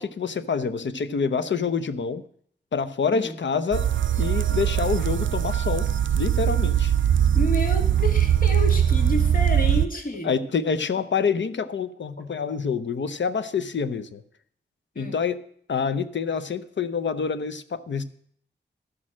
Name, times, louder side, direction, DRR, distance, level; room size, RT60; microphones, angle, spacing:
voice 1, 0.0-2.2 2.7-3.9 4.2-5.9 6.1-6.9 10.2-14.2 15.0-15.4 15.7-18.0, left 5 dB, 75° left, 11 dB, 0.8 m, -27 dB
voice 2, 3.1-3.4 7.3-10.3 14.9-15.2, left 1 dB, 45° left, 3 dB, 2.1 m, -30 dB
sound 1, 3.7-9.9, right 9 dB, 85° right, 0.5 m, -21 dB
12.5 x 6.4 x 7.4 m, 0.62 s
wide cardioid pair, 95°, 19 cm